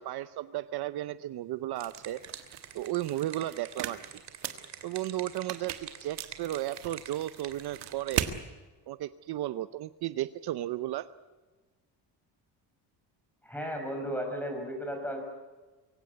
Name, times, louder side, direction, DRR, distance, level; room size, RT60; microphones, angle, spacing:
voice 1, 0.0-2.2 2.7-4.0 4.8-8.3 8.9-11.1, right 14 dB, 65° right, 14 dB, 0.7 m, -34 dB
sound 1, 1.5-8.3, right 8 dB, 40° right, 2.5 m, -47 dB
sound 2, 1.8-8.4, right 11 dB, 80° right, 1.7 m, -39 dB
voice 2, 13.4-15.2, equal, 5° left, 4 dB, 5.1 m, -34 dB
24.0 x 16.5 x 9.6 m, 1.3 s
cardioid pair, 160°, 42 cm